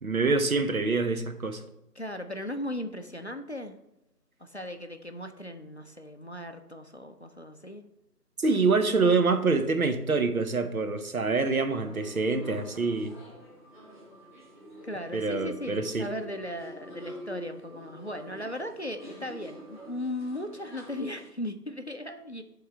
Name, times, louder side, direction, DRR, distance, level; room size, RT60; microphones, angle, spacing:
voice 1, 0.0-1.6 8.4-13.2 15.1-16.1, right 4 dB, 60° right, 9 dB, 0.9 m, -26 dB
voice 2, 2.0-3.8 4.4-7.9 14.8-22.4, left 1 dB, 45° left, 7 dB, 0.5 m, -37 dB
sound 1, 11.7-21.3, equal, ahead, 1.5 m, -46 dB
10.5 x 3.8 x 4.3 m, 0.90 s
figure-of-eight pair, 165°, 48 cm